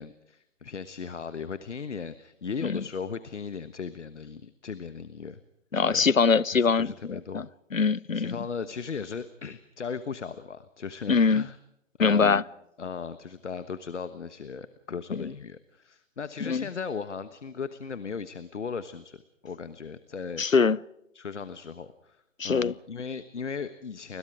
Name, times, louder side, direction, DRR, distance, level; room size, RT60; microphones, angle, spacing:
voice 1, 0.0-5.4 5.9-6.0 6.5-7.4 8.1-11.6 12.0-12.4 12.8-20.4 21.1-24.2, left 5 dB, 65° left, 1.3 m, -37 dB
voice 2, 5.7-7.5 7.7-8.4 11.1-11.4 12.0-12.4 15.2-15.3 16.4-16.6 20.4-20.8 22.4-22.7, left 5 dB, 85° left, 0.7 m, -23 dB
30.0 x 21.5 x 4.9 m
figure-of-eight pair, 135°, 39 cm